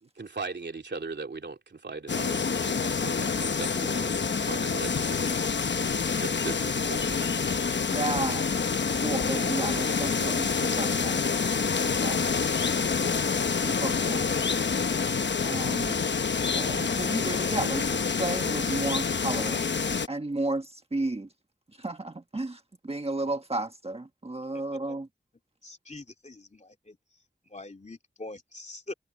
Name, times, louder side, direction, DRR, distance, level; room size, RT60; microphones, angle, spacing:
voice 1, 0.0-7.4, right 3 dB, 75° right, 3.0 m, -39 dB
sound 1, 2.1-20.1, left 5 dB, 75° left, 0.9 m, -27 dB
voice 2, 7.9-8.5 8.9-11.2 11.8-12.2 13.6-14.4 15.4-16.0 16.6-19.7 20.1-21.3 21.8-25.1, right 2 dB, 35° right, 1.4 m, -33 dB
voice 3, 25.6-27.0 27.4-28.9, left 2 dB, 40° left, 2.9 m, -43 dB
wide cardioid pair, 60°, 18 cm